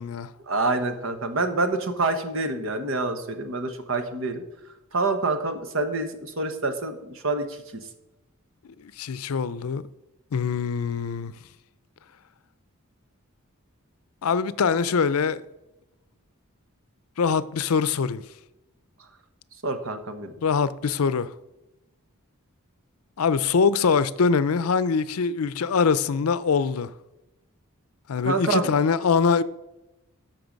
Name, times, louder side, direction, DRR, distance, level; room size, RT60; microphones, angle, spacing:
voice 1, 0.5-4.4 4.9-7.8 19.6-20.3 28.2-28.7, right 3 dB, 65° right, 1.1 m, -27 dB
voice 2, 8.8-9.8 10.3-11.3 14.2-15.4 17.2-18.2 20.4-21.3 23.2-26.9 28.1-29.4, left 5 dB, 80° left, 0.5 m, -23 dB
13.0 x 5.9 x 5.2 m
head